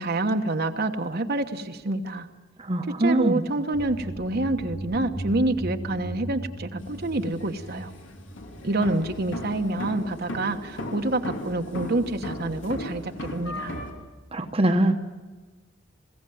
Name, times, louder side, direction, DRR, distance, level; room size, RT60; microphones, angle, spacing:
voice 1, 0.0-2.3 3.0-7.9 8.6-13.7, right 2 dB, 55° right, 5 dB, 1.2 m, -27 dB
voice 2, 2.6-3.4 14.3-15.0, right 1 dB, 30° right, 5 dB, 1.1 m, -22 dB
sound 1, 3.7-9.5, right 1 dB, 70° left, 3.8 m, -37 dB
sound 2, 6.8-13.9, left 1 dB, 90° left, 2.9 m, -37 dB
21.5 x 16.0 x 9.4 m, 1.3 s
head